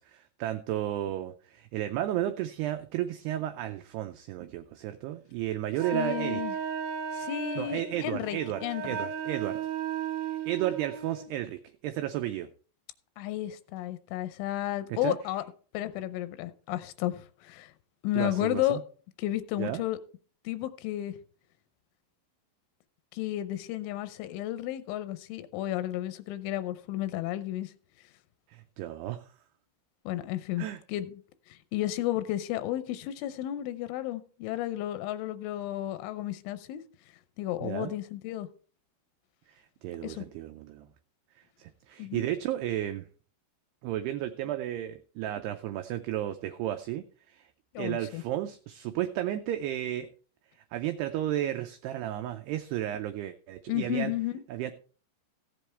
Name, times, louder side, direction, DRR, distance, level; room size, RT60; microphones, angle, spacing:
voice 1, 0.0-6.4 7.6-9.6 10.5-12.5 14.9-15.2 18.1-18.8 19.6-19.8 28.5-29.3 30.6-30.8 37.6-37.9 39.5-40.9 41.6-43.1 43.8-47.5 47.8-50.1 50.7-54.1 54.5-54.7, right 12 dB, 90° right, 2.3 m, -33 dB
Wind instrument woodwind instrument, 5.8-11.3, right 7 dB, 70° right, 2.7 m, -35 dB
voice 2, 5.9-6.5 7.1-9.0 13.2-15.4 15.7-17.7 18.0-18.8 19.2-20.0 20.4-21.1 23.1-27.7 30.1-31.2 31.5-36.8 37.4-38.5 40.0-40.2 42.0-42.3 47.7-48.2 53.7-54.4, left 14 dB, 90° left, 3.2 m, -32 dB
15.5 x 7.9 x 3.3 m
omnidirectional pair, 5.4 m